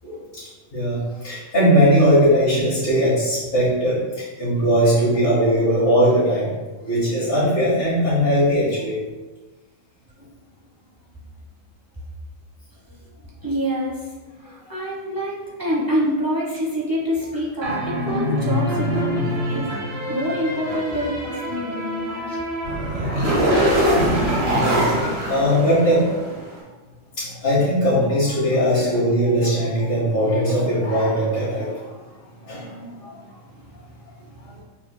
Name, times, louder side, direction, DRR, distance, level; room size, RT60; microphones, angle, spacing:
voice 1, 0.7-6.5 6.8-9.0 18.7-19.2 22.2-22.3 23.0-23.6 23.9-24.0 24.5-24.9 25.3-26.1 27.2-31.7 32.5-33.2, equal, 45° left, -13 dB, 1.7 m, -20 dB
voice 2, 13.4-14.1 14.4-19.6 20.1-22.4, equal, 15° right, -6 dB, 1.0 m, -26 dB
sound 1, 17.6-26.3, equal, 50° right, 1.3 m, -23 dB
5.8 x 3.8 x 2.2 m, 1.2 s
omnidirectional pair, 1.4 m